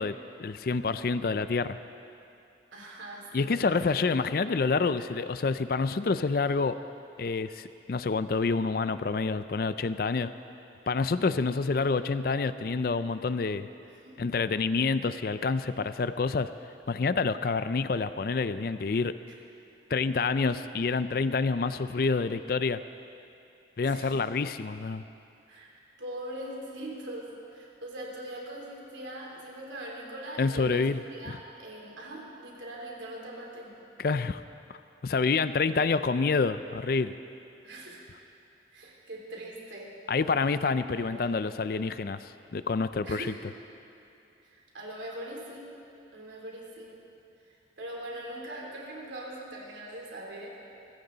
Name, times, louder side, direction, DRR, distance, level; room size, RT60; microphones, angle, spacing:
voice 1, 0.0-1.8 3.3-6.8 7.2-10.3 10.9-13.7 14.2-16.5 16.9-19.1 19.9-22.8 23.8-25.0 30.4-31.4 34.0-34.4 35.0-37.1 40.1-43.3, left 4 dB, 50° left, 12 dB, 0.4 m, -28 dB
voice 2, 2.7-3.8 14.0-14.2 23.9-24.2 25.5-33.7 35.6-35.9 37.6-38.0 38.7-39.9 40.9-41.3 43.0-43.3 44.4-45.7 46.1-47.0 47.5-50.6, right 1 dB, 85° right, -2 dB, 3.4 m, -42 dB
23.5 x 15.0 x 4.0 m, 2.7 s
head